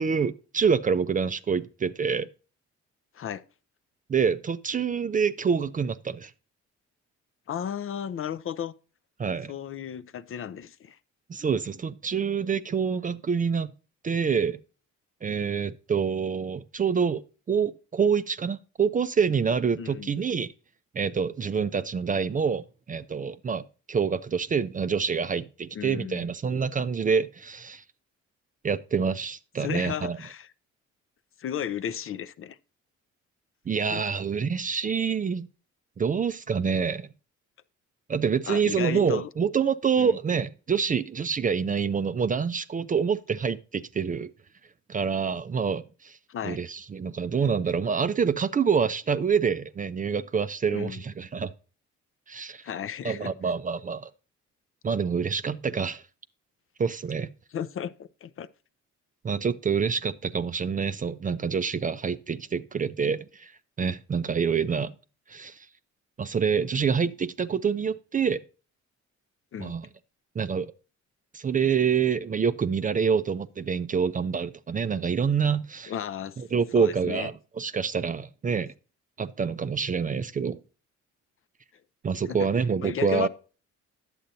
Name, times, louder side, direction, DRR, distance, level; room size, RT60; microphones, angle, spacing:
voice 1, 0.0-2.3 4.1-6.3 9.2-9.5 11.3-13.7 14.0-14.6 15.2-17.2 17.5-20.5 20.9-27.8 28.6-30.2 33.7-35.5 36.0-37.1 38.1-44.3 44.9-46.2 46.4-51.5 52.3-52.6 53.0-54.1 54.8-56.0 56.8-57.3 59.2-63.5 63.8-64.9 65.3-65.7 66.2-68.4 69.6-69.9 70.4-70.7 71.3-75.9 76.4-78.7 79.2-80.6 82.0-83.3, right 6 dB, 30° right, 0.4 m, -26 dB
voice 2, 7.5-8.7 9.5-11.0 19.8-20.1 25.7-26.3 29.6-30.5 31.4-32.6 33.9-34.1 38.5-39.3 40.0-40.2 46.3-46.6 50.7-51.0 52.6-53.3 57.5-58.5 69.5-69.7 75.9-76.4 76.8-77.3 82.3-82.5 82.8-83.3, left 9 dB, 45° left, 0.5 m, -34 dB
10.0 x 7.7 x 2.7 m
cardioid pair, 90°, 30 cm